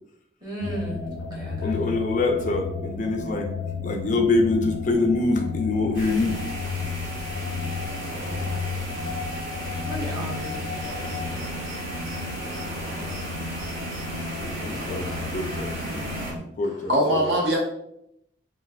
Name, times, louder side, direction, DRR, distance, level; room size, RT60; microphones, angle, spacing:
voice 1, 0.4-1.9 9.9-10.6, right 1 dB, 20° right, -4 dB, 0.8 m, -34 dB
sound 1, 0.6-16.4, left 4 dB, 85° left, 0.7 m, -33 dB
voice 2, 1.6-3.5 3.8-6.4 14.4-16.0 16.6-16.9 17.2-17.3, left 3 dB, 40° left, 3 dB, 0.3 m, -25 dB
sound 2, 5.9-16.3, right 1 dB, 45° right, 0.5 m, -41 dB
sound 3, 5.9-16.3, right 1 dB, 85° right, 1.2 m, -37 dB
voice 3, 16.6-17.6, equal, 65° right, -3 dB, 0.9 m, -22 dB
3.1 x 2.5 x 2.4 m, 0.76 s
head